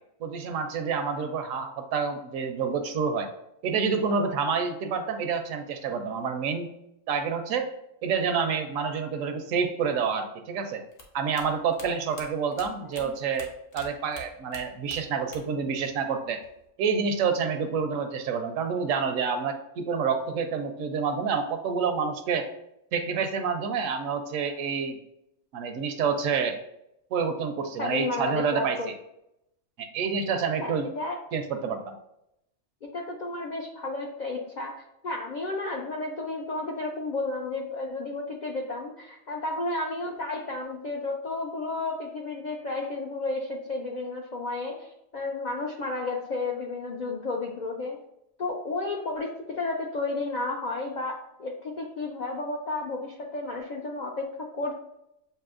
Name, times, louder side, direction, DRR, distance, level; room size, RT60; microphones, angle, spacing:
voice 1, 0.2-3.3 3.6-6.8 7.1-7.7 8.0-10.8 11.1-13.5 13.7-16.4 16.8-22.5 22.9-25.0 25.5-26.6 27.1-28.9 29.8-30.9 31.3-31.9, right 6 dB, 80° right, 7 dB, 1.0 m, -28 dB
sound 1, 10.9-13.9 14.1-15.6 15.9-16.7, left 2 dB, 55° left, 1.0 m, -46 dB
voice 2, 27.8-28.9 30.6-31.2 32.8-48.0 48.4-54.7, left 2 dB, 70° left, 0 dB, 0.4 m, -32 dB
6.8 x 2.7 x 2.4 m, 0.83 s
omnidirectional pair, 1.4 m